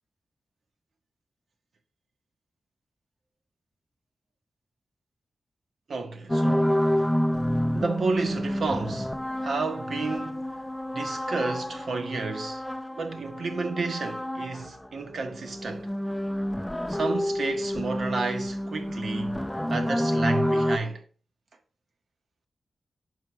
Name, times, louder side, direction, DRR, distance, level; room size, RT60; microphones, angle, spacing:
voice 1, 5.9-7.1 7.7-9.2 9.4-10.5 10.9-12.6 12.9-15.9 16.9-19.4 19.7-21.0, right 3 dB, 65° right, 0.9 m, -31 dB
sound 1, 6.3-14.9 15.2-20.8, equal, 5° left, 0.4 m, -29 dB
5.8 x 4.6 x 4.5 m
wide cardioid pair, 160°, 0 cm